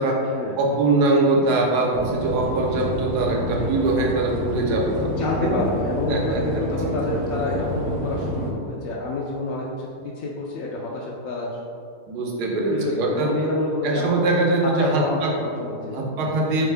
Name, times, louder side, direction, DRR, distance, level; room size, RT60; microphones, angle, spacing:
voice 1, 0.6-5.1 5.4-5.7 6.1-7.0 12.1-13.3 13.8-15.4 15.9-16.7, right 2 dB, 80° right, -1 dB, 1.3 m, -22 dB
sound 1, 1.9-8.5, equal, 65° right, 1.0 m, -28 dB
voice 2, 5.0-9.9 10.1-11.5 12.7-14.3 14.6-16.4, left 2 dB, 70° left, -4 dB, 0.9 m, -28 dB
4.4 x 3.6 x 3.3 m, 2.4 s
omnidirectional pair, 1.7 m